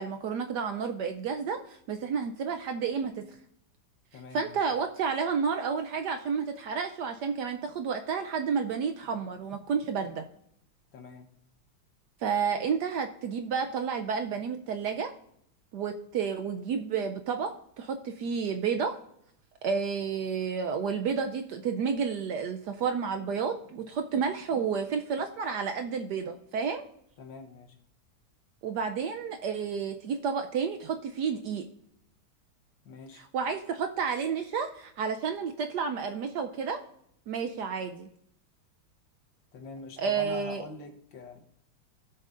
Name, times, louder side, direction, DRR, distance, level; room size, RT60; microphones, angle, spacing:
voice 1, 0.0-3.4 4.3-10.2 12.2-15.1 15.7-19.0 19.6-26.9 28.6-31.6 33.1-36.8 37.3-38.1 40.0-40.6, right 6 dB, 70° right, 6 dB, 1.0 m, -31 dB
voice 2, 4.1-4.7 10.9-11.4 27.2-27.8 32.9-33.2 39.5-41.4, left 4 dB, 70° left, 5 dB, 1.8 m, -44 dB
17.0 x 6.9 x 2.5 m, 0.72 s
omnidirectional pair, 2.2 m